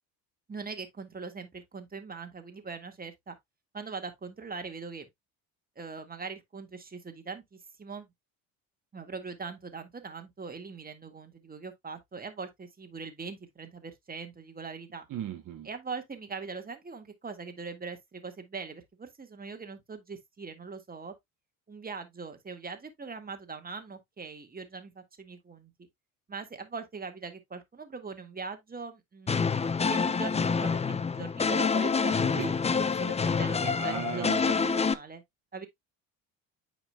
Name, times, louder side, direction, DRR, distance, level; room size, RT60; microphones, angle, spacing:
voice 1, 0.5-3.4 3.7-5.1 5.8-8.1 8.9-15.1 15.6-21.1 21.7-25.9 26.3-35.2 35.5-35.7, right 4 dB, 20° right, 1.8 m, -41 dB
voice 2, 15.1-15.7 32.2-32.5 33.8-34.7, right 10 dB, 45° right, 1.0 m, -37 dB
sound 1, 29.3-34.9, left 5 dB, 15° left, 0.5 m, -27 dB
9.1 x 5.0 x 2.3 m
hypercardioid pair, 70°, 43 cm